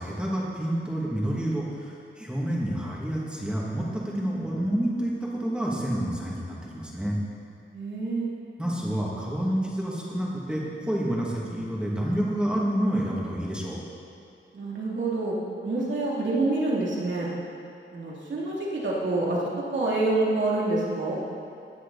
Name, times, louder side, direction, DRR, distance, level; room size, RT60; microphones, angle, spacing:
voice 1, 0.0-7.2 8.6-13.8, right 1 dB, 5° right, -6 dB, 2.5 m, -28 dB
voice 2, 7.7-8.3 14.5-15.4 15.6-17.3 17.9-19.4 19.7-21.2, right 2 dB, 60° right, -5 dB, 3.0 m, -27 dB
17.0 x 9.8 x 4.2 m, 2.5 s
wide cardioid pair, 120°, 21 cm